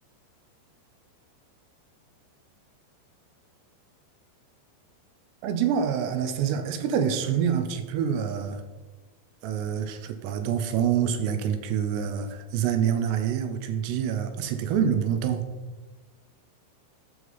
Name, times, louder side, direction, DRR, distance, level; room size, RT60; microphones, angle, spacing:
voice 1, 5.4-8.6 9.4-15.5, right 8 dB, 80° right, 8 dB, 2.6 m, -26 dB
12.5 x 6.1 x 4.0 m, 1.2 s
omnidirectional pair, 5.1 m